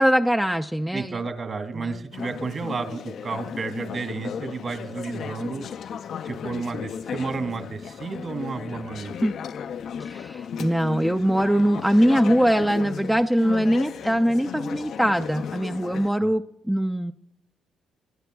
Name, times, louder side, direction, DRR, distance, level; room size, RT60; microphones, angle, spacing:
voice 1, 0.0-1.2 1.8-1.9 9.2-9.4 10.0-17.1, equal, 5° right, 7 dB, 0.4 m, -22 dB
voice 2, 0.9-5.7 6.2-9.1 16.2-16.3, right 4 dB, 50° right, 8 dB, 2.3 m, -32 dB
Conversation / Chatter, 2.1-16.1, left 7 dB, 65° left, 0.4 m, -35 dB
25.0 x 11.0 x 2.3 m, 0.76 s
cardioid pair, 90°, 0 cm